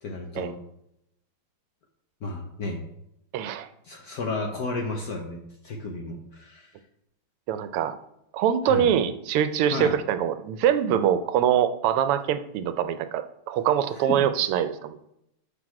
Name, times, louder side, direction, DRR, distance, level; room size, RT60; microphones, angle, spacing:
voice 1, 0.0-0.6 2.2-2.8 3.8-5.4 5.6-6.7 8.7-8.9 9.7-9.9 14.1-14.2, left 3 dB, 60° left, 2 dB, 1.0 m, -32 dB
voice 2, 3.3-3.7 7.5-8.0 8.3-15.1, right 9 dB, 85° right, 11 dB, 1.5 m, -24 dB
6.1 x 6.0 x 4.8 m, 0.81 s
omnidirectional pair, 2.4 m